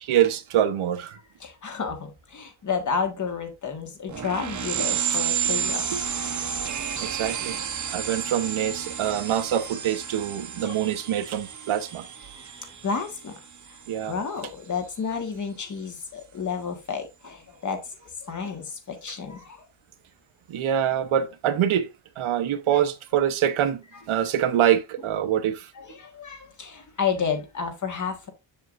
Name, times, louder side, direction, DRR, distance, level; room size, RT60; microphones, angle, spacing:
voice 1, 0.0-1.2 5.9-6.0 7.0-7.6 7.9-12.1 13.9-14.1 20.5-21.9 22.2-25.7, right 10 dB, 85° right, 1.1 m, -25 dB
voice 2, 1.4-5.9 9.0-9.1 10.6-10.8 12.3-13.3 13.7-19.7 22.7-22.8 23.9-24.0 25.7-28.3, left 6 dB, 40° left, 1.6 m, -31 dB
sound 1, 4.1-14.2, right 8 dB, 35° right, 0.9 m, -31 dB
7.6 x 7.2 x 2.6 m
wide cardioid pair, 175°, 48 cm